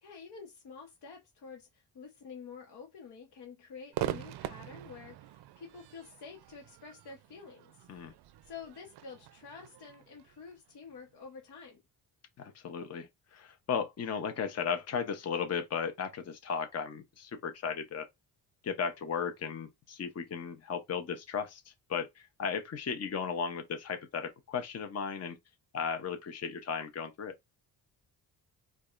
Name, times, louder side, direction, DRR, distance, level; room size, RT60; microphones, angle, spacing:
voice 1, 0.0-7.9 8.4-11.8, left 5 dB, 70° left, 1.1 m, -49 dB
Crowd / Fireworks, 3.9-11.3, right 13 dB, 75° right, 0.5 m, -43 dB
voice 2, 12.4-18.1 18.6-21.6 21.9-25.4 25.7-27.3, left 6 dB, 40° left, 0.8 m, -35 dB
4.7 x 2.3 x 2.5 m
cardioid pair, 115°, 41 cm